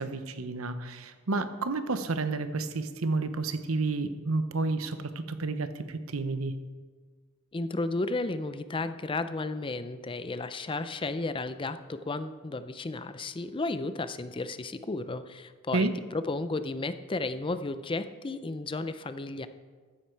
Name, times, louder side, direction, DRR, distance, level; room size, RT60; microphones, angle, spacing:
voice 1, 0.0-6.5 15.7-15.9, right 3 dB, 80° right, 10 dB, 0.9 m, -30 dB
voice 2, 7.5-19.5, left 2 dB, 25° left, 12 dB, 0.5 m, -33 dB
14.5 x 10.0 x 4.6 m, 1.5 s
head